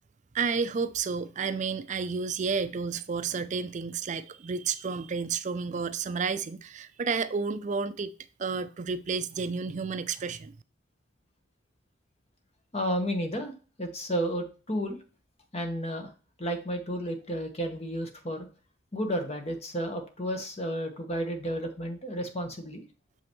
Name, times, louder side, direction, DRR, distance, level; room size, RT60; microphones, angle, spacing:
voice 1, 0.3-8.1 8.4-10.5, right 5 dB, 40° right, 0.4 m, -31 dB
voice 2, 12.7-13.5 13.8-15.0 15.5-16.1 16.4-18.5 18.9-22.8, equal, 35° left, 1.3 m, -32 dB
6.8 x 5.4 x 3.1 m
head